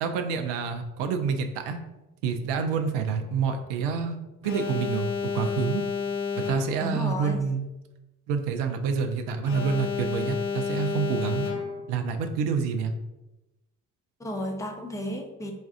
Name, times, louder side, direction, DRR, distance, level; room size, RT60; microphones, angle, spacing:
voice 1, 0.0-1.8 2.2-4.2 4.4-5.8 6.4-7.7 8.3-11.5 11.9-12.9, right 6 dB, 65° right, 6 dB, 0.6 m, -28 dB
Alarm, 4.4-7.0 9.4-12.0, left 6 dB, 75° left, 0.6 m, -31 dB
voice 2, 6.8-7.5 14.2-15.5, equal, 5° left, 3 dB, 0.5 m, -33 dB
5.1 x 2.3 x 2.4 m, 1.0 s
figure-of-eight pair, 45°, 44 cm